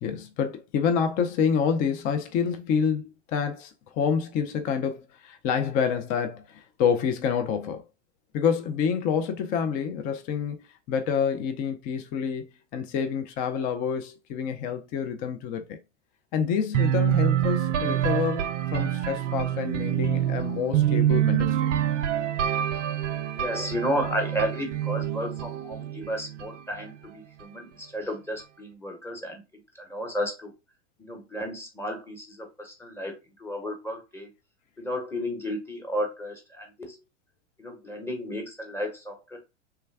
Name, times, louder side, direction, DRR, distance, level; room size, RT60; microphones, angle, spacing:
voice 1, 0.0-7.8 8.3-12.5 12.7-15.8 16.3-18.4 18.7-21.7, left 7 dB, 25° left, 0.3 m, -27 dB
sound 1, 16.7-26.6, right 11 dB, 85° right, 0.6 m, -26 dB
voice 2, 23.3-29.4 29.7-30.5 31.0-34.3 34.8-37.0 37.6-39.4, equal, 5° left, 1.0 m, -33 dB
3.3 x 2.1 x 3.3 m
hypercardioid pair, 110°, 35 cm